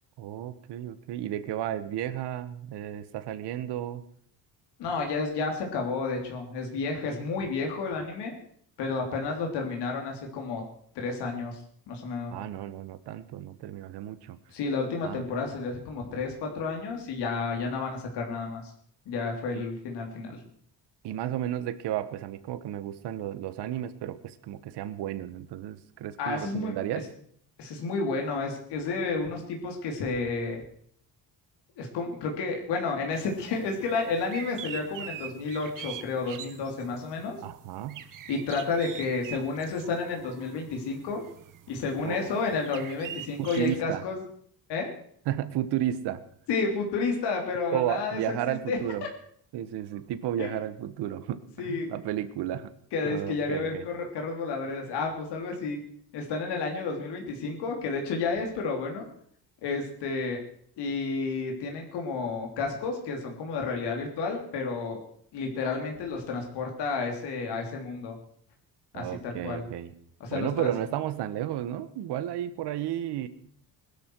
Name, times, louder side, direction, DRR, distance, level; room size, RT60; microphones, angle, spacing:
voice 1, 0.2-4.0 12.3-14.4 15.0-15.2 19.5-19.6 21.0-27.0 37.4-38.0 42.0-42.3 43.4-44.0 45.3-46.2 47.7-49.0 49.5-52.7 53.0-53.8 68.9-69.9 70.3-73.3, right 11 dB, 75° right, 13 dB, 1.4 m, -33 dB
voice 2, 4.8-8.3 8.8-10.6 10.9-11.6 11.9-12.3 14.5-18.7 19.0-20.4 26.2-26.7 27.6-30.6 31.8-37.4 38.3-41.2 41.7-44.2 44.7-44.9 46.5-49.1 50.4-50.6 51.6-52.0 52.9-55.8 56.1-59.1 59.6-60.4 60.8-65.0 65.3-68.1 68.9-69.6 70.2-70.7, left 4 dB, 75° left, 2 dB, 3.2 m, -31 dB
sound 1, 33.1-43.8, right 10 dB, 50° right, 1.3 m, -44 dB
21.0 x 12.5 x 4.7 m, 0.63 s
cardioid pair, 155°, 40 cm